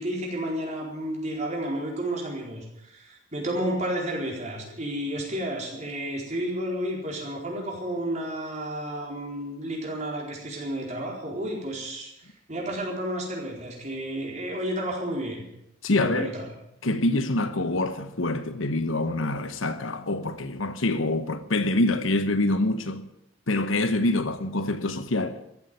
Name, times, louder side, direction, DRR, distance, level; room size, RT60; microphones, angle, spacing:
voice 1, 0.0-12.1 12.5-15.5 15.9-16.5, right 1 dB, 35° right, 4.4 m, -31 dB
voice 2, 15.8-16.3 16.8-23.0 23.5-25.4, left 2 dB, 85° left, 1.2 m, -25 dB
14.5 x 8.4 x 9.7 m
head